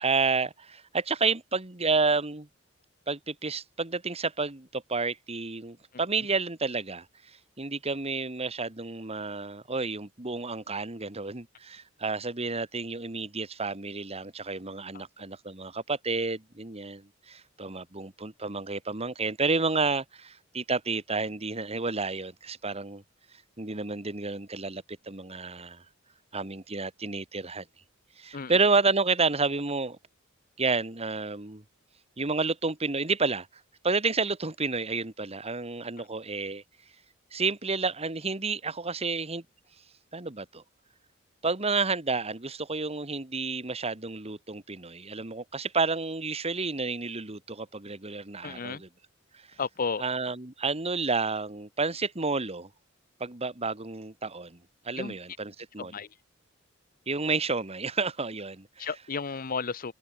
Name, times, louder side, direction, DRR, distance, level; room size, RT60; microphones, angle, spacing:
voice 1, 0.0-2.5 3.1-7.1 7.6-23.0 23.6-25.8 26.3-27.6 28.2-30.0 30.6-31.6 32.2-33.5 33.8-36.6 37.3-39.4 40.1-40.6 41.4-48.9 50.0-52.7 53.2-54.6 54.8-55.9 57.1-58.9, right 4 dB, 30° right, 2.0 m, -30 dB
voice 2, 48.4-48.8 49.6-50.0 55.0-55.2 55.8-56.1 58.8-59.9, left 5 dB, 45° left, 0.8 m, -33 dB
head